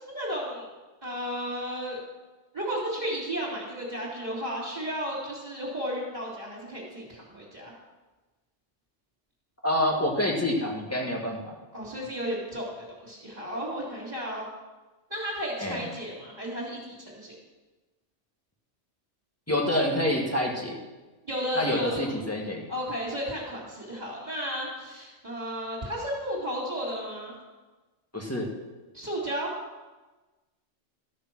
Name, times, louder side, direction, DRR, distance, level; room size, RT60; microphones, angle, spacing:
voice 1, 0.1-0.6 1.0-2.0 2.5-7.7 11.7-14.4 15.1-17.3 21.2-21.9 22.7-27.3 28.9-29.5, equal, 35° right, -8 dB, 3.2 m, -33 dB
voice 2, 9.6-11.6 15.6-15.8 19.5-20.8 21.6-22.6 28.1-28.5, left 1 dB, 10° left, -1 dB, 1.8 m, -27 dB
14.0 x 6.7 x 6.1 m, 1.2 s
omnidirectional pair, 1.2 m